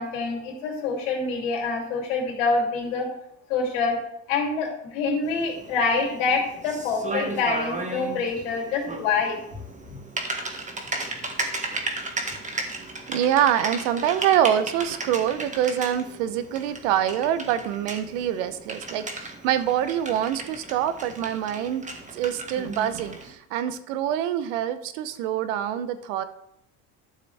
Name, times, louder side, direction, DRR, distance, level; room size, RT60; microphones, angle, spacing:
voice 1, 0.0-3.1 3.5-4.0 4.3-9.4 9.9-10.0, left 4 dB, 85° left, 0 dB, 3.0 m, -26 dB
Typing, 5.2-23.3, right 2 dB, 20° right, 1.7 m, -35 dB
voice 2, 13.1-21.8 22.1-26.2, right 10 dB, 80° right, 12 dB, 0.9 m, -25 dB
12.0 x 6.8 x 3.4 m, 0.78 s
supercardioid pair, 90°, 37 cm